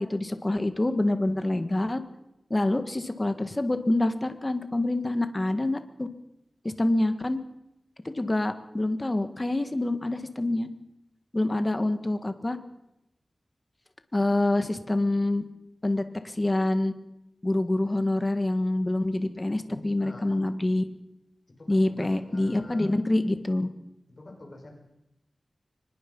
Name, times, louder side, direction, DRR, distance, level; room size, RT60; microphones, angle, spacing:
voice 1, 0.0-2.0 2.5-6.1 6.6-7.4 8.0-10.7 11.3-12.6 14.1-15.4 15.8-16.9 17.4-20.8 21.7-23.7, left 1 dB, 25° left, 9 dB, 1.8 m, -26 dB
voice 2, 19.7-20.4 21.6-23.0 24.1-24.7, left 2 dB, 45° left, 2 dB, 5.8 m, -46 dB
24.5 x 20.5 x 5.5 m, 0.86 s
wide cardioid pair, 100°, 0 cm